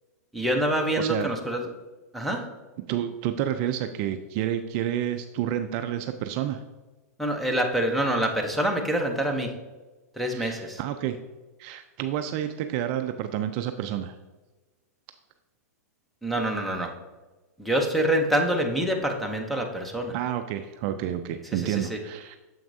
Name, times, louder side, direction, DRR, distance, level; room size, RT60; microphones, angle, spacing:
voice 1, 0.3-1.6 2.1-2.4 7.2-9.5 10.1-10.8 16.2-16.9 17.6-20.1 21.5-22.0, right 1 dB, ahead, 2 dB, 0.8 m, -26 dB
voice 2, 1.0-1.3 2.9-6.6 10.3-11.2 11.6-14.2 20.1-22.4, right 11 dB, 40° right, 8 dB, 0.4 m, -29 dB
7.1 x 5.9 x 2.7 m, 1.2 s
hypercardioid pair, 135°, 9 cm